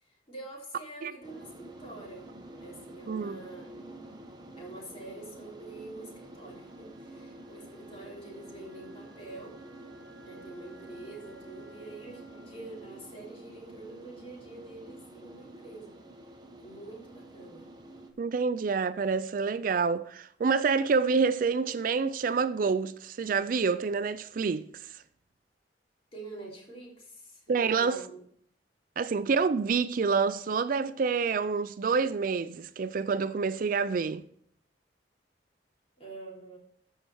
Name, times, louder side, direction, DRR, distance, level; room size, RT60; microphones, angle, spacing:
voice 1, 0.0-2.3 2.6-3.7 4.6-9.6 10.2-16.0 16.6-17.7 26.1-28.2 36.0-36.6, right 2 dB, 30° left, 3.5 m, -46 dB
sound 1, 1.2-18.1, right 1 dB, 25° right, 1.1 m, -49 dB
voice 2, 3.1-3.4 18.2-25.0 27.5-28.0 29.0-34.2, right 5 dB, 50° right, 0.4 m, -27 dB
Wind instrument woodwind instrument, 6.2-14.2, right 1 dB, 70° right, 1.6 m, -56 dB
14.0 x 5.5 x 4.6 m
head